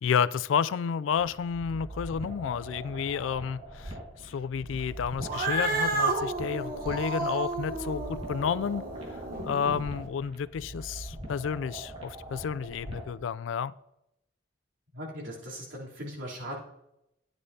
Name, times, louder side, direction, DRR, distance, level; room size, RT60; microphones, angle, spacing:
voice 1, 0.0-4.0 4.2-8.9 9.4-13.7, left 7 dB, 85° left, 0.3 m, -31 dB
sound 1, 1.2-13.2, right 1 dB, 30° right, 1.7 m, -43 dB
Cat, 5.2-9.8, right 2 dB, 50° right, 1.1 m, -31 dB
voice 2, 14.9-16.5, equal, 85° right, 3.3 m, -39 dB
13.0 x 9.7 x 2.8 m
head